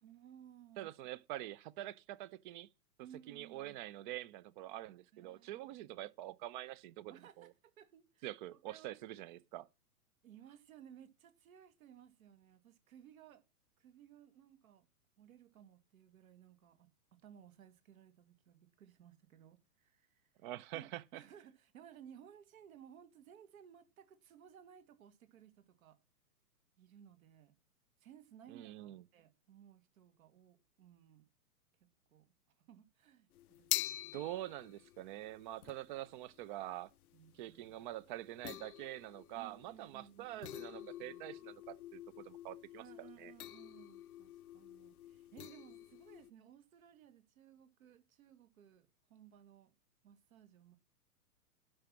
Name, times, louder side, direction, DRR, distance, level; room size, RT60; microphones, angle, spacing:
voice 1, 0.0-0.9 3.0-3.8 5.1-5.7 7.1-7.5 7.8-9.0 10.2-13.4 13.8-14.9 15.2-20.5 20.7-26.0 26.8-27.6 28.0-31.3 31.8-32.3 32.7-34.3 37.1-37.8 39.4-41.4 42.8-49.7 50.0-50.8, right 9 dB, 60° right, 2.3 m, -60 dB
voice 2, 0.8-2.7 3.3-7.5 8.2-9.7 20.4-21.2 28.5-29.0 34.1-36.9 37.3-43.3, right 14 dB, 30° right, 0.7 m, -46 dB
sound 1, 33.3-46.3, left 13 dB, 65° left, 0.5 m, -46 dB
11.5 x 6.0 x 6.2 m
hypercardioid pair, 125°, 47 cm